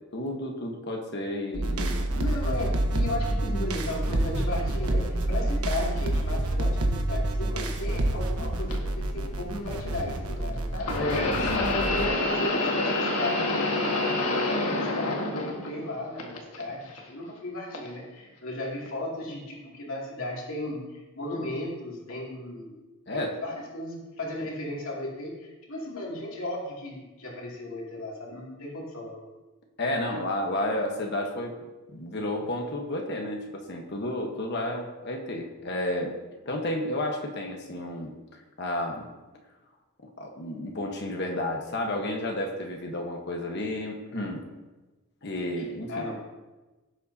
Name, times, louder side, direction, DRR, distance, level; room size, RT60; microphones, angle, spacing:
voice 1, 0.1-2.0 10.9-11.7 23.1-23.4 29.8-31.6 31.9-36.1 36.4-38.2 38.6-39.1 40.2-44.5 45.2-46.1, left 1 dB, 50° left, 1 dB, 1.2 m, -31 dB
sound 1, 1.5-12.1, right 1 dB, 85° right, 1.1 m, -28 dB
voice 2, 2.1-11.0 11.4-14.0 14.3-22.8 23.1-29.2 45.6-46.2, left 1 dB, 70° left, -3 dB, 2.6 m, -35 dB
sound 2, 8.7-8.8 10.8-15.9 16.2-17.0 17.7-17.9 18.9-19.0, left 2 dB, 90° left, 1.7 m, -27 dB
17.0 x 7.6 x 2.8 m, 1.2 s
head